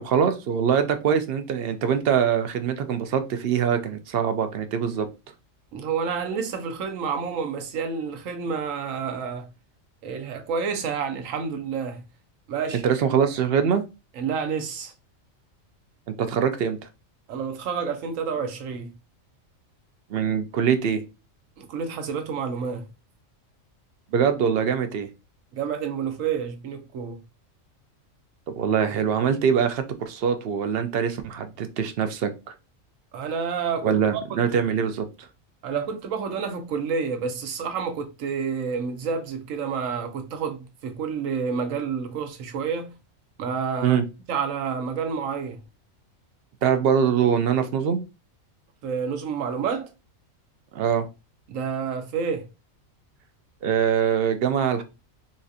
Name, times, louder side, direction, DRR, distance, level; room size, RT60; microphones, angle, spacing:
voice 1, 0.0-5.1 12.8-13.8 16.1-16.8 20.1-21.0 24.1-25.1 28.6-32.3 33.8-35.1 43.8-44.0 46.6-48.0 50.7-51.1 53.6-54.8, right 7 dB, 60° right, 0.6 m, -23 dB
voice 2, 5.7-9.5 10.0-12.0 12.5-12.8 14.2-14.9 17.3-18.9 21.6-22.8 25.5-27.2 33.1-34.5 35.6-42.9 43.4-44.0 44.3-45.6 48.8-49.9 51.5-52.5, right 6 dB, 80° right, 1.1 m, -29 dB
4.2 x 2.4 x 2.6 m
omnidirectional pair, 1.4 m